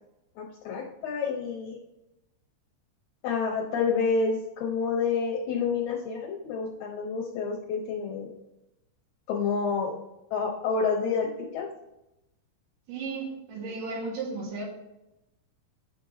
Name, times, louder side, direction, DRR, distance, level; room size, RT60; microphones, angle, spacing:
voice 1, 0.4-1.8 3.2-8.3 9.3-9.9 10.3-11.7, left 5 dB, 70° left, -2 dB, 2.8 m, -29 dB
voice 2, 12.9-14.7, right 4 dB, 75° right, -3 dB, 4.1 m, -34 dB
11.5 x 4.7 x 3.8 m, 0.91 s
omnidirectional pair, 5.4 m